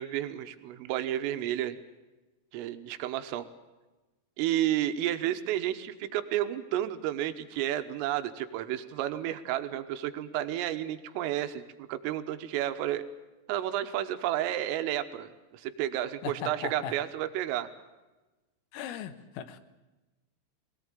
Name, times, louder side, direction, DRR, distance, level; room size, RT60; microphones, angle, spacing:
voice 1, 0.0-1.8 2.5-3.5 4.4-11.6 11.9-13.0 13.5-17.7, right 12 dB, 90° right, 9 dB, 3.7 m, -31 dB
voice 2, 16.2-16.9 18.7-19.6, left 8 dB, 90° left, 11 dB, 3.9 m, -38 dB
23.0 x 18.0 x 9.0 m, 1.1 s
omnidirectional pair, 5.7 m